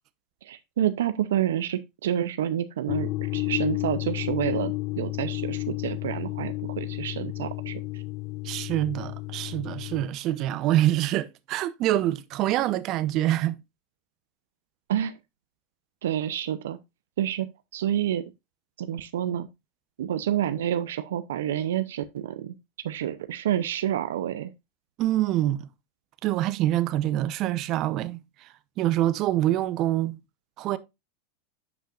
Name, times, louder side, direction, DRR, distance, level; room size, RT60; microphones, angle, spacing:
voice 1, 0.4-8.0 14.9-15.2 16.0-16.8 17.2-17.5 17.7-18.2 18.8-19.5 20.0-24.5, right 11 dB, 80° right, 0.5 m, -29 dB
sound 1, 2.9-10.1, left 23 dB, 50° left, 0.3 m, -32 dB
voice 2, 8.4-13.6 25.0-25.7 26.2-28.5 28.8-30.2 30.6-30.8, right 14 dB, 50° right, 0.7 m, -25 dB
10.5 x 5.6 x 2.4 m
hypercardioid pair, 110°, 0 cm